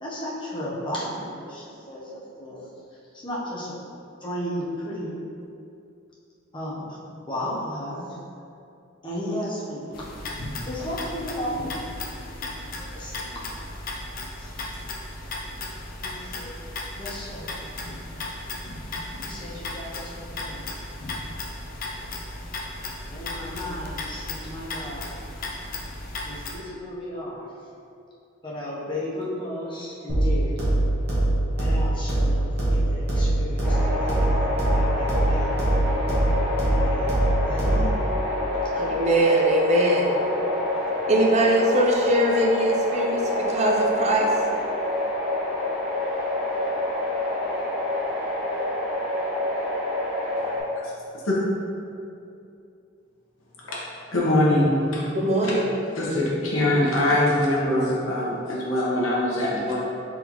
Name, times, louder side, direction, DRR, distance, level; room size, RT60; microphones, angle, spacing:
voice 1, 0.0-2.7 3.1-3.7 4.2-5.2 6.5-7.0 7.3-8.2 9.0-10.4 10.7-11.8 12.4-13.4 14.4-14.5 16.0-16.5 16.9-17.5 18.3-18.5 19.2-20.7 23.1-25.2 26.2-27.5 28.4-30.6 31.6-34.5 34.7-35.8 36.1-36.4 36.8-38.1 38.7-38.8, left 1 dB, 25° left, -7 dB, 0.8 m, -34 dB
sound 1, 9.9-26.5, left 2 dB, 45° left, 0.5 m, -35 dB
sound 2, 30.1-38.1, right 1 dB, 55° right, 1.2 m, -23 dB
sound 3, 33.6-50.6, left 1 dB, 10° right, 1.2 m, -27 dB
voice 2, 38.8-40.2 41.1-44.3 55.1-55.7, right 1 dB, 35° right, -1 dB, 0.5 m, -21 dB
voice 3, 54.1-55.0 55.4-55.5 56.0-59.8, left 1 dB, 90° left, -5 dB, 1.0 m, -22 dB
3.8 x 3.8 x 3.0 m, 2.6 s
head